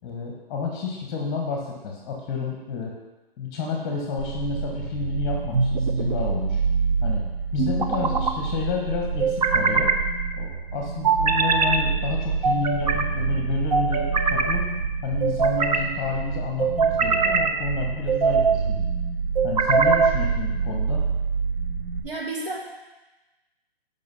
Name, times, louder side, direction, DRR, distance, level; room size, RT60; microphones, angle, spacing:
voice 1, 0.0-2.9 3.4-6.6 7.0-7.2 7.5-9.9 10.3-14.6 15.0-18.9 19.4-21.0, left 5 dB, 20° left, -1 dB, 1.3 m, -30 dB
sound 1, 4.2-22.0, right 5 dB, 80° right, 1.4 m, -28 dB
sound 2, 5.5-6.2 7.6-8.3 9.2-10.0 11.0-11.8 12.4-13.1 13.7-14.6 15.2-15.9 16.6-17.5 18.1-18.6 19.4-20.2, right 5 dB, 40° right, 0.8 m, -22 dB
voice 2, 22.0-22.6, right 2 dB, 65° right, -4 dB, 2.8 m, -31 dB
7.5 x 5.4 x 5.6 m, 1.1 s
figure-of-eight pair, 140°, 30 cm